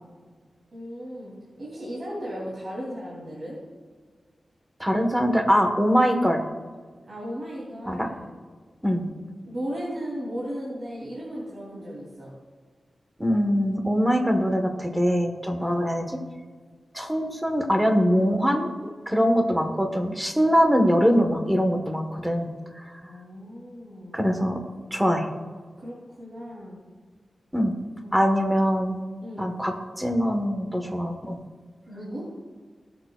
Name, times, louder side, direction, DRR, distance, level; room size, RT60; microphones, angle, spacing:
voice 1, 0.7-3.6 7.1-8.3 9.4-12.3 15.6-15.9 23.0-24.2 25.8-26.8 29.2-29.6 31.9-32.3, equal, 45° right, -7 dB, 3.0 m, -36 dB
voice 2, 4.8-6.4 7.9-8.1 8.8-9.1 13.2-16.0 16.9-18.7 19.1-22.5 22.8-23.0 24.1-24.6 24.9-25.3 27.5-27.7 28.1-29.0 29.4-31.4, equal, 5° right, 4 dB, 1.3 m, -23 dB
20.0 x 6.9 x 2.4 m, 1.5 s
wide cardioid pair, 105°, 0 cm